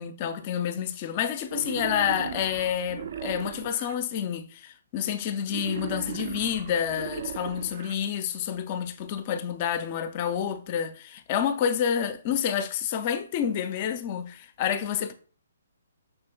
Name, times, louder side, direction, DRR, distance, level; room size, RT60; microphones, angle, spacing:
voice 1, 0.0-15.1, left 8 dB, 30° left, 0.4 m, -29 dB
Wild animals, 1.5-3.9 5.5-7.9, right 8 dB, 50° right, 0.3 m, -37 dB
5.5 x 3.6 x 2.2 m
hypercardioid pair, 165°, 0 cm